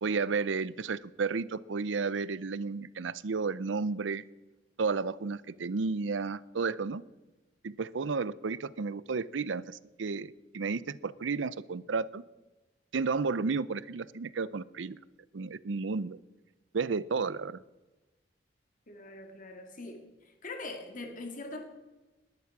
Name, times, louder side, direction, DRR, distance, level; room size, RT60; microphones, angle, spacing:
voice 1, 0.0-4.2 4.8-7.0 7.6-12.2 12.9-15.0 15.3-16.2 16.7-17.6, right 4 dB, 85° right, 19 dB, 0.6 m, -32 dB
voice 2, 18.9-20.0 20.4-21.6, left 2 dB, 45° left, 4 dB, 2.2 m, -42 dB
19.5 x 11.0 x 6.0 m, 1.1 s
head